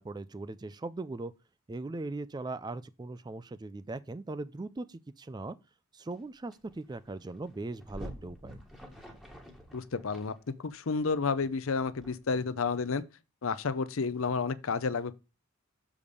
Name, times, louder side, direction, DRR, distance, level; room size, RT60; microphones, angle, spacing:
voice 1, 0.0-1.3 1.7-5.6 5.9-8.6, right 2 dB, 20° right, 0.3 m, -39 dB
sound 1, 6.1-6.2 6.5-12.7, equal, ahead, 1.5 m, -49 dB
voice 2, 9.7-10.3 10.6-13.0 13.4-15.2, left 4 dB, 65° left, 0.6 m, -31 dB
7.0 x 4.9 x 5.3 m
head